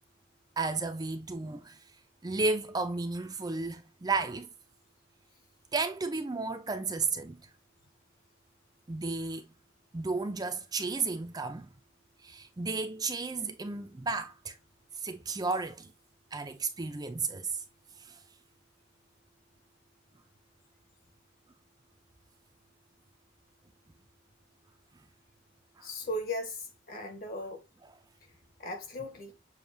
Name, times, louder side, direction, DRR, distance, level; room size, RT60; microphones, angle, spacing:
voice 1, 0.6-1.8 2.2-4.5 5.7-7.4 8.9-9.5 9.9-11.7 12.2-14.5 15.0-15.9 16.3-17.5 25.8-25.9, right 3 dB, 20° right, 0.5 m, -33 dB
voice 2, 25.8-27.6 28.6-29.3, left 1 dB, 50° left, 1.3 m, -37 dB
7.1 x 2.4 x 2.7 m
head